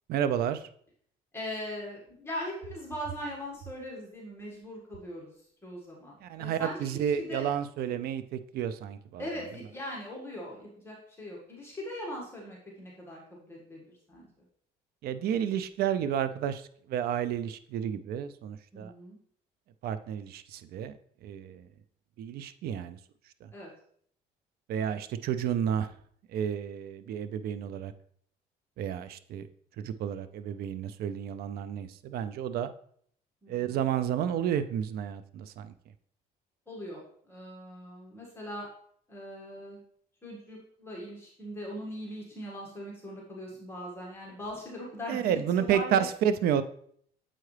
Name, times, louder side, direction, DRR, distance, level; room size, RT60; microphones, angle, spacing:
voice 1, 0.1-0.6 6.2-9.2 15.0-16.6 16.9-18.9 19.8-21.0 21.2-21.6 22.2-23.0 23.4-23.5 24.7-25.9 26.3-27.9 28.8-29.5 29.8-32.7 33.5-35.7 45.1-46.6, right 9 dB, 65° right, 11 dB, 0.5 m, -31 dB
voice 2, 1.3-5.3 5.6-7.4 9.2-13.8 14.1-14.3 18.7-19.2 23.5-23.7 33.4-33.8 36.7-37.0 37.3-38.7 39.1-39.8 40.2-46.0, left 1 dB, 15° left, -4 dB, 1.7 m, -40 dB
7.5 x 4.7 x 3.2 m, 0.63 s
cardioid pair, 110°, 17 cm